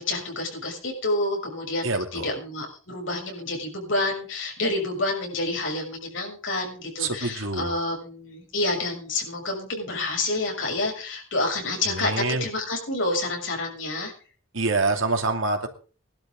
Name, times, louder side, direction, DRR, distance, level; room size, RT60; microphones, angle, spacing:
voice 1, 0.0-12.1 12.4-14.1, left 2 dB, 65° left, 1 dB, 6.8 m, -28 dB
voice 2, 1.8-2.3 7.0-7.7 11.9-12.4 14.5-15.7, right 3 dB, 75° right, 5 dB, 2.6 m, -26 dB
20.0 x 12.0 x 3.8 m, 0.38 s
head